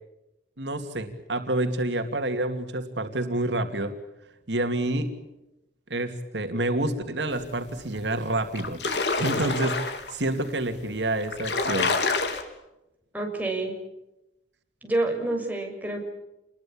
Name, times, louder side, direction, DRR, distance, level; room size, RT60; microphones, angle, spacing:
voice 1, 0.6-3.9 4.5-5.1 5.9-8.8 9.2-12.0, right 1 dB, 85° right, 6 dB, 2.7 m, -28 dB
sound 1, 7.9-8.0 8.4-10.2 10.9-11.0 11.2-12.4, left 3 dB, 75° left, 3.6 m, -27 dB
voice 2, 13.1-13.7 14.8-16.1, right 2 dB, 10° right, 2 dB, 6.8 m, -28 dB
29.0 x 22.0 x 8.9 m, 0.91 s
head